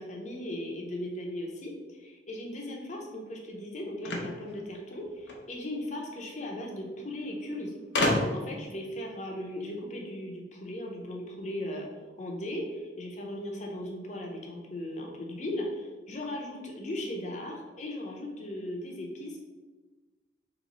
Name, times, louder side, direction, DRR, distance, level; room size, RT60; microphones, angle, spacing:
voice 1, 0.0-7.7 8.0-11.9 12.2-19.4, left 1 dB, 40° left, 0 dB, 0.7 m, -37 dB
sound 1, 4.0-5.4 6.5-6.6 6.9-7.0 7.9-8.6, left 1 dB, 80° left, 0.7 m, -29 dB
3.0 x 3.0 x 4.1 m, 1.3 s
head